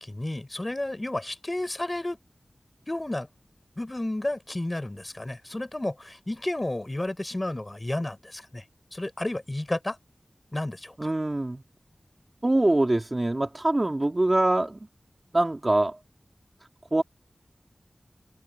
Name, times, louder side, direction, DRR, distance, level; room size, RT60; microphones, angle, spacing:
voice 1, 0.0-2.2 2.9-3.3 3.8-8.6 8.9-10.0 10.5-11.1, left 1 dB, 30° left, 3.8 m, -32 dB
voice 2, 11.0-11.6 12.4-14.8 15.3-16.0 16.9-17.0, right 2 dB, 35° right, 2.7 m, -24 dB
wide cardioid pair, 60°, 0 cm